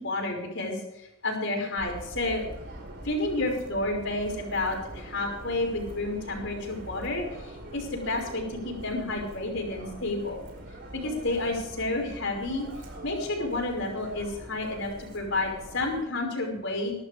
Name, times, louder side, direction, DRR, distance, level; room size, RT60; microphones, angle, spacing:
voice 1, 0.0-2.4 3.0-10.4 10.9-12.7 13.0-16.9, left 2 dB, 60° left, 1 dB, 5.5 m, -30 dB
Subway metro underground, 1.8-16.0, right 1 dB, 50° right, 4.6 m, -43 dB
22.5 x 12.5 x 3.4 m, 0.84 s
head